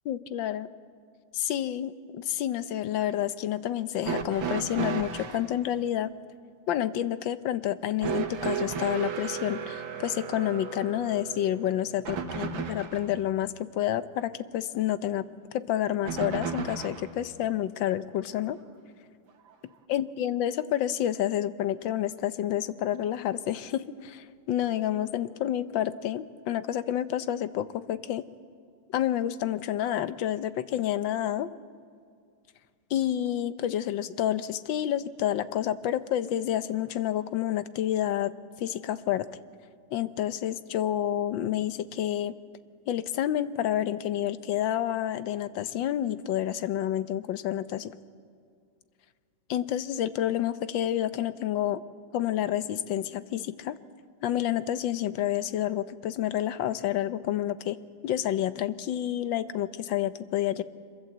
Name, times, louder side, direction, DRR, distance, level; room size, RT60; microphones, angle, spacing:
voice 1, 0.1-0.7 1.3-6.1 6.7-15.3 15.5-18.6 19.9-28.2 28.9-31.5 32.9-38.3 38.6-39.3 39.9-42.3 42.9-47.9 49.5-51.8 52.1-53.8 54.2-57.8 58.0-60.6, left 11 dB, 80° left, 13 dB, 1.5 m, -29 dB
sound 1, 4.0-5.5 8.0-13.1 16.0-17.1 18.3-18.4 19.5-19.6, right 6 dB, 85° right, 2.2 m, -34 dB
25.0 x 22.5 x 8.0 m, 2.2 s
omnidirectional pair, 2.1 m